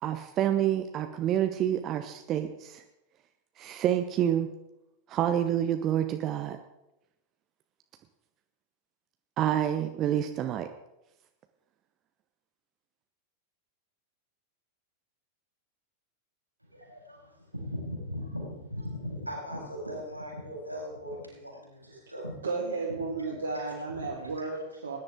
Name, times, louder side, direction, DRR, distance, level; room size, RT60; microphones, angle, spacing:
voice 1, 0.0-2.8 3.6-4.5 5.1-6.6 9.4-10.7, right 11 dB, 35° right, 0.9 m, -28 dB
voice 2, 16.6-22.4 22.9-23.0 23.5-23.7 24.0-24.1 24.4-24.5, equal, 90° right, 5.2 m, -39 dB
voice 3, 22.4-25.0, right 3 dB, 75° right, 2.5 m, -33 dB
20.0 x 10.5 x 3.8 m
figure-of-eight pair, 90°, 0 cm